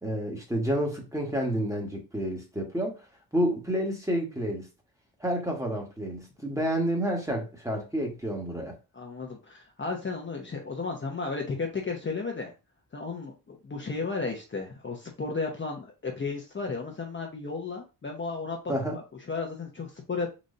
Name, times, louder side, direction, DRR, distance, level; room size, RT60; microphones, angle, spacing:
voice 1, 0.0-3.0 3.3-4.7 5.2-8.8 18.7-19.0, equal, 10° right, 1.3 m, -29 dB
voice 2, 8.9-12.5 12.9-20.3, left 4 dB, 30° left, 0.8 m, -34 dB
4.0 x 2.5 x 3.1 m
cardioid pair, 90°, 37 cm